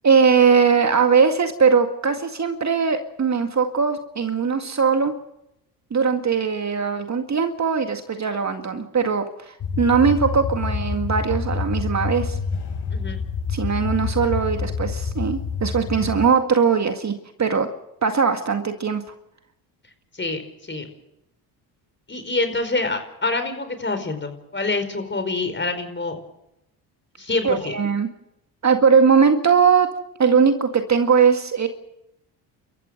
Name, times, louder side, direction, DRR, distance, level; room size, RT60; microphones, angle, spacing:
voice 1, 0.0-5.1 5.9-12.4 13.5-17.1 17.4-17.7 18.0-19.0 27.4-28.1 28.6-29.9 30.2-31.7, right 6 dB, 35° right, 6 dB, 2.0 m, -20 dB
sound 1, 9.6-16.3, left 5 dB, 55° left, 4.0 m, -27 dB
voice 2, 22.1-26.2 27.2-27.7, left 3 dB, 20° left, 8 dB, 4.9 m, -26 dB
30.0 x 14.5 x 6.6 m, 0.84 s
hypercardioid pair, 60°, 49 cm